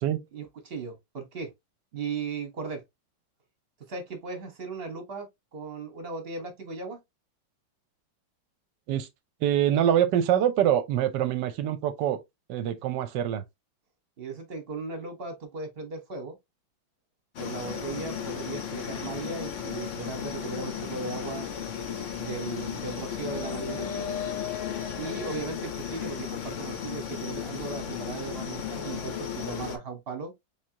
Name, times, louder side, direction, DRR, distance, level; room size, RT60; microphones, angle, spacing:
voice 1, 0.3-1.5 1.9-2.8 3.9-5.3 5.5-7.0 14.2-16.4 17.4-21.5 22.2-23.9 25.0-30.3, right 4 dB, 40° right, 1.0 m, -37 dB
voice 2, 9.4-12.2 12.5-13.4, right 10 dB, 70° right, 1.1 m, -24 dB
sound 1, 17.4-29.8, left 8 dB, 65° left, 0.7 m, -35 dB
3.7 x 3.2 x 2.7 m
omnidirectional pair, 2.2 m